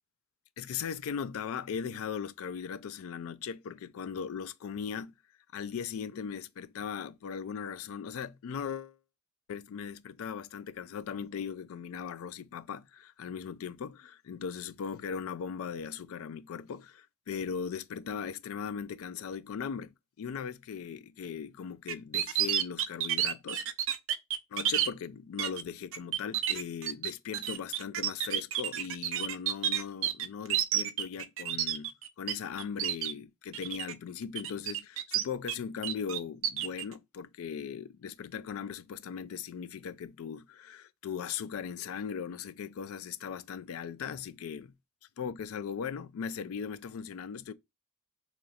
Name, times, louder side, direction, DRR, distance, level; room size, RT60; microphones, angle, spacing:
voice 1, 0.6-5.1 5.5-9.0 9.5-23.7 24.5-31.9 32.2-44.7 45.2-47.5, left 7 dB, 75° left, 0.3 m, -38 dB
sound 1, 21.9-24.9 25.4-25.6 25.9-32.3 32.6-33.1 33.5-33.9 34.3-35.5 35.8-36.8, right 11 dB, 65° right, 0.4 m, -30 dB
3.0 x 2.4 x 4.0 m
head